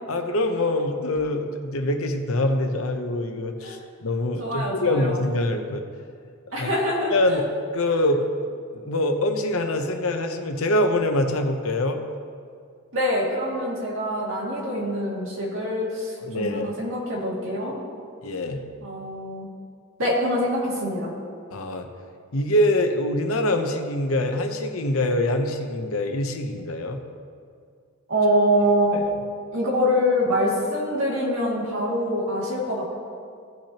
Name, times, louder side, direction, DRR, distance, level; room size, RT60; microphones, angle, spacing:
voice 1, 0.1-5.8 6.5-6.7 7.1-7.4 7.7-8.5 8.9-12.0 16.2-16.7 18.2-18.6 21.5-21.9 22.3-27.0 28.9-29.0, left 1 dB, 65° left, 5 dB, 0.8 m, -24 dB
voice 2, 4.4-5.2 6.5-7.4 12.9-17.7 18.8-19.5 20.0-21.1 28.1-29.0 29.5-32.9, equal, 60° right, -4 dB, 2.4 m, -24 dB
16.5 x 5.8 x 3.0 m, 2.2 s
head